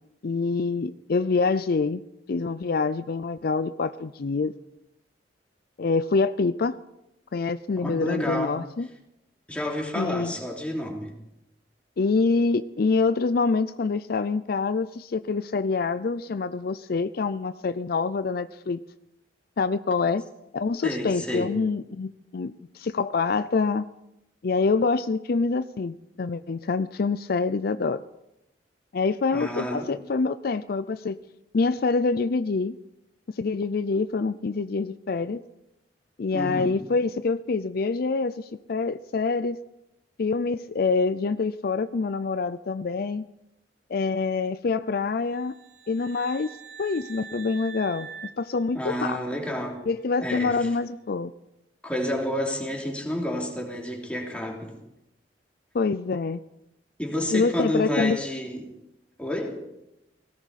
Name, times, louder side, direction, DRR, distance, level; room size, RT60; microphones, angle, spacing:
voice 1, 0.2-2.0 2.3-4.5 5.8-6.8 7.3-8.9 10.0-10.3 12.0-18.8 19.6-20.2 20.5-23.9 24.4-28.0 28.9-31.2 31.5-32.8 33.3-35.4 36.2-39.6 40.2-43.3 43.9-45.5 45.9-46.5 46.8-48.1 48.4-49.2 49.9-51.3 55.7-56.4 57.3-58.2, left 4 dB, 55° left, 13 dB, 0.5 m, -26 dB
voice 2, 7.8-8.6 9.5-11.1 20.8-21.5 29.3-29.9 36.3-36.8 48.7-49.8 50.2-50.7 51.8-54.7 57.0-58.7 59.2-59.6, left 1 dB, 5° left, -1 dB, 3.2 m, -30 dB
sound 1, 45.3-49.3, right 7 dB, 60° right, 2.5 m, -44 dB
18.5 x 17.0 x 4.2 m, 0.87 s
head